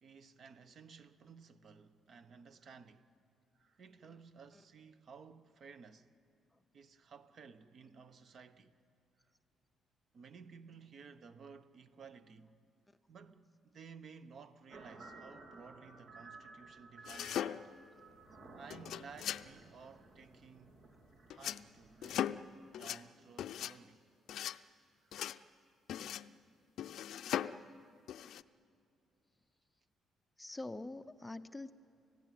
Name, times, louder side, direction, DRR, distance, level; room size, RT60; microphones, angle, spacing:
voice 1, 0.0-3.1 3.5-6.1 6.7-8.7 10.1-12.5 13.1-17.7 18.6-20.8 21.3-22.4 22.8-24.0 25.0-25.1, right 5 dB, 50° right, 1.0 m, -56 dB
sound 1, 14.7-22.3, right 3 dB, 70° right, 3.5 m, -56 dB
sound 2, 17.1-17.9 18.7-19.5 21.3-21.7 22.0-22.5 22.7-23.0 23.4-23.8 24.3-24.6 25.1-25.4 25.9-26.3 26.8-27.6 28.1-28.4, left 10 dB, 70° left, 0.5 m, -39 dB
voice 2, 30.4-31.7, left 2 dB, 10° left, 0.6 m, -45 dB
29.5 x 15.5 x 9.2 m
cardioid pair, 125°, 0 cm